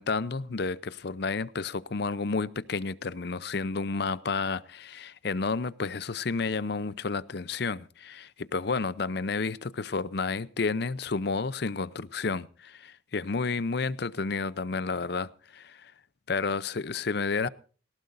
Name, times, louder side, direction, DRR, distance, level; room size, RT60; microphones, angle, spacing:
voice 1, 0.0-15.9 16.3-17.5, left 4 dB, 60° left, 0.6 m, -31 dB
19.0 x 17.0 x 2.6 m
head